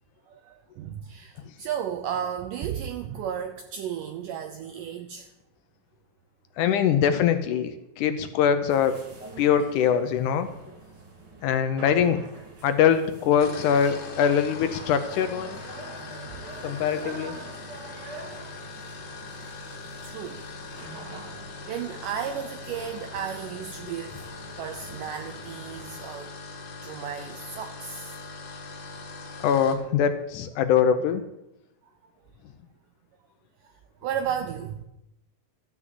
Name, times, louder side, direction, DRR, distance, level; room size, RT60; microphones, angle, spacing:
voice 1, 0.3-5.3 16.3-16.4 20.0-20.4 21.7-24.2 24.6-26.3 26.8-28.2 34.0-34.8, right 8 dB, 80° right, 7 dB, 2.0 m, -34 dB
voice 2, 6.6-9.0 9.4-10.5 11.4-12.2 12.6-15.6 16.6-17.4 29.4-31.2, left 8 dB, 80° left, 9 dB, 1.8 m, -23 dB
sound 1, 8.7-26.0, right 2 dB, 35° right, 2.0 m, -45 dB
sound 2, 13.4-29.8, left 4 dB, 60° left, 2.9 m, -41 dB
13.5 x 6.1 x 7.6 m, 0.88 s
omnidirectional pair, 4.3 m